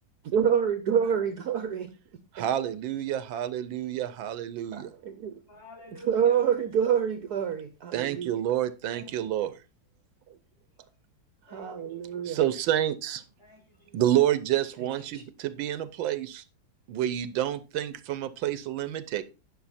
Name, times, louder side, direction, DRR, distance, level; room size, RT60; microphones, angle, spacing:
voice 1, 0.2-1.9 2.4-2.5 4.7-5.3 6.1-8.3 11.5-12.4 15.1-15.2, right 8 dB, 60° right, 1.1 m, -27 dB
voice 2, 2.3-4.9 7.9-9.5 12.3-13.2 13.9-16.4 16.9-19.2, right 12 dB, 80° right, 1.4 m, -28 dB
voice 3, 5.5-6.4 8.9-9.6 11.5-12.3 13.4-14.0, left 1 dB, 30° left, 3.9 m, -50 dB
10.5 x 6.0 x 4.2 m
omnidirectional pair, 2.1 m